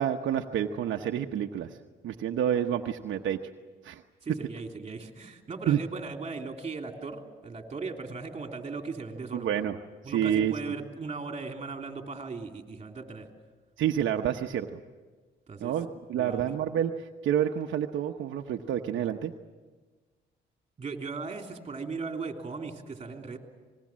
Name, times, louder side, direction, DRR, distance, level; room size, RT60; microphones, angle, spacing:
voice 1, 0.0-1.7 2.0-3.4 3.8-4.0 5.7-5.8 9.3-9.7 10.1-10.5 13.8-14.8 15.6-19.3, right 9 dB, 75° right, 3 dB, 1.0 m, -28 dB
voice 2, 4.2-9.5 10.0-13.3 15.5-15.7 16.1-16.4 20.8-23.4, right 4 dB, 30° right, 3 dB, 3.3 m, -37 dB
26.0 x 20.5 x 7.5 m, 1.4 s
cardioid pair, 90°, 20 cm